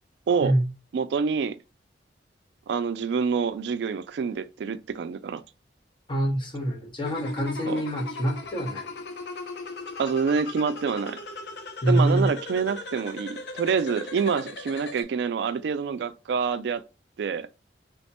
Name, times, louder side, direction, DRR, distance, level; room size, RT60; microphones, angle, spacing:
voice 1, 0.9-1.6 2.7-5.4 7.7-7.8 10.0-11.2 11.9-16.8 17.2-17.5, right 5 dB, 70° right, 0.3 m, -27 dB
voice 2, 6.1-8.9 11.8-12.3, right 1 dB, 25° left, 0.8 m, -25 dB
sound 1, 7.1-15.0, left 3 dB, 65° left, 0.6 m, -38 dB
3.4 x 2.1 x 4.1 m
head